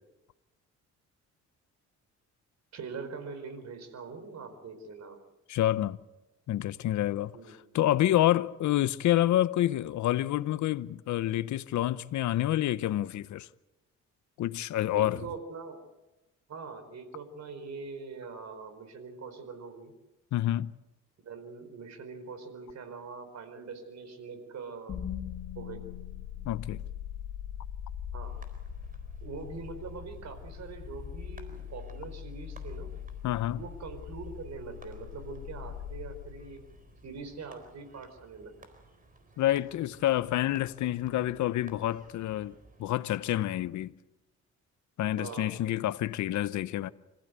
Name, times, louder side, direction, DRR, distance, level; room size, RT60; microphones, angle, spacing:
voice 1, 2.7-5.2 7.3-7.6 14.9-15.8 16.5-19.9 21.2-25.0 25.5-25.8 28.1-28.4 29.2-32.9 33.6-36.6 37.0-38.5 45.2-45.5, right 4 dB, 60° right, 4.7 m, -43 dB
voice 2, 5.5-6.0 6.5-13.5 14.4-15.2 20.3-20.7 26.4-26.8 33.2-33.6 39.4-43.9 45.0-46.9, left 13 dB, 70° left, 0.8 m, -28 dB
sound 1, 24.9-37.0, left 9 dB, 55° left, 3.5 m, -41 dB
sound 2, 28.2-43.0, right 2 dB, 25° right, 4.2 m, -55 dB
26.5 x 15.5 x 8.2 m
cardioid pair, 90°, 30 cm